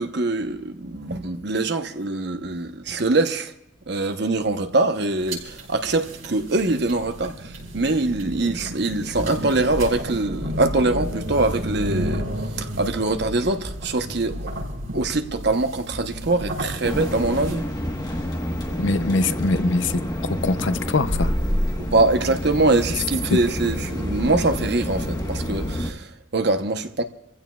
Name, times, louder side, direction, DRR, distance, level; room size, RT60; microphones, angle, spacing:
voice 1, 0.0-3.5 3.9-14.6 14.9-17.7 21.8-27.0, right 2 dB, 55° right, 0.9 m, -23 dB
sound 1, 5.2-17.5, equal, 85° right, 5.3 m, -32 dB
sound 2, 16.8-25.9, equal, 20° left, 1.3 m, -27 dB
voice 2, 18.8-20.0 20.4-21.3, left 3 dB, 70° left, 0.6 m, -22 dB
28.5 x 15.5 x 2.4 m
head